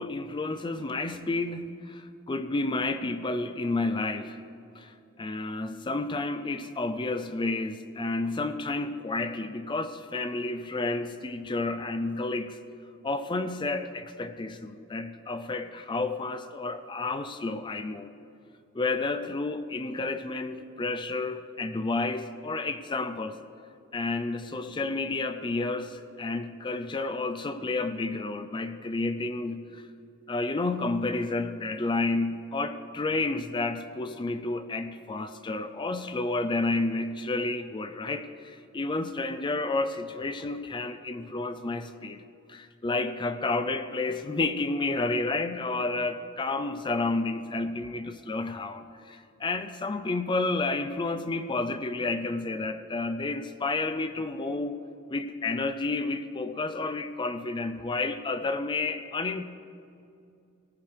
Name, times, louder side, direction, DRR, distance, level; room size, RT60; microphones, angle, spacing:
voice 1, 0.0-4.4 4.8-12.6 13.0-18.1 18.7-23.4 23.9-29.9 30.3-42.2 42.5-54.8 55.1-59.4, left 3 dB, 20° left, 10 dB, 0.4 m, -31 dB
19.5 x 15.0 x 3.3 m, 2.5 s
head